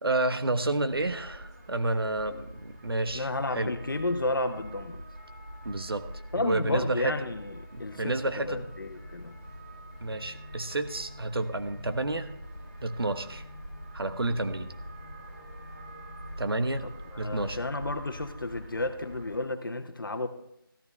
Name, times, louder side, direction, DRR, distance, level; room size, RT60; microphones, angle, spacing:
voice 1, 0.0-3.7 5.6-6.0 6.3-7.1 7.7-8.7 10.0-12.3 12.8-13.4 13.9-14.7 16.4-16.9 17.2-17.6, right 2 dB, 75° right, 9 dB, 1.2 m, -30 dB
sound 1, 0.9-19.4, right 1 dB, 40° right, 2.4 m, -45 dB
voice 2, 3.1-5.0 6.3-9.3 17.1-20.3, left 2 dB, 60° left, 8 dB, 1.2 m, -32 dB
sound 2, 7.8-18.1, left 3 dB, 10° left, 0.4 m, -53 dB
13.5 x 12.0 x 3.4 m, 0.77 s
figure-of-eight pair, 175°, 12 cm